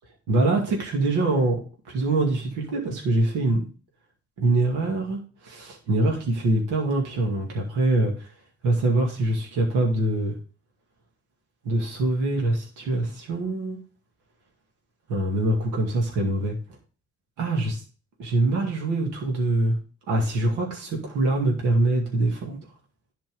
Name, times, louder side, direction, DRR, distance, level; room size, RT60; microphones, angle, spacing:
voice 1, 0.3-1.6 1.9-3.6 4.4-5.2 5.4-8.1 8.6-10.3 11.7-13.8 15.1-16.5 17.4-17.8 18.2-19.8 20.1-22.6, right 2 dB, 80° right, 0 dB, 2.2 m, -24 dB
10.5 x 4.4 x 5.2 m, 0.37 s
supercardioid pair, 55°, 30 cm